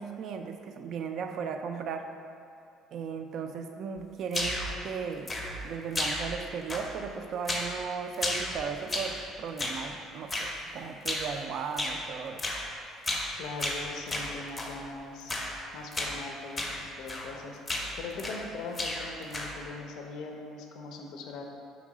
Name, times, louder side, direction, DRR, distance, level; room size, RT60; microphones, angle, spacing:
voice 1, 0.0-2.1 2.9-5.3 5.6-12.5, right 6 dB, 55° right, 6 dB, 0.3 m, -36 dB
sound 1, 4.3-4.8 5.3-5.7 5.9-6.4 6.7-7.1 7.5-7.8 8.1-9.2 9.6-9.9 10.3-10.5 11.0-11.3 11.8-12.0 12.4-12.7 13.0-13.3 13.6-14.8 15.3-15.6 15.9-16.2 16.6-16.8 17.1-17.4 17.7-18.5 18.7-19.6, left 1 dB, 25° left, 0.5 m, -33 dB
voice 2, 13.4-15.3 15.7-17.6 18.0-21.4, left 3 dB, 70° left, 2 dB, 0.5 m, -40 dB
4.0 x 3.0 x 3.7 m, 2.4 s
cardioid pair, 110°, 0 cm